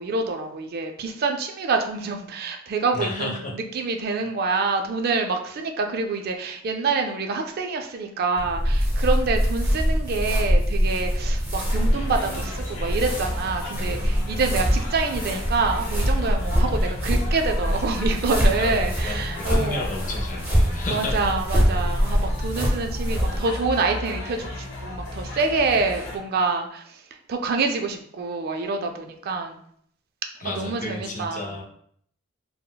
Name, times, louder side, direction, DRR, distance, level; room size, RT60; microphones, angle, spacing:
voice 1, 0.0-19.9 20.9-27.0 27.3-29.6 30.4-31.6, right 4 dB, 50° right, 4 dB, 0.3 m, -26 dB
voice 2, 2.9-3.5 18.5-21.3 30.4-31.6, left 2 dB, 40° left, 0 dB, 0.5 m, -32 dB
sound 1, 8.4-23.4, equal, 10° right, 0.6 m, -24 dB
sound 2, 11.7-26.2, left 1 dB, 90° left, 0.7 m, -35 dB
3.8 x 2.0 x 2.2 m, 0.66 s
head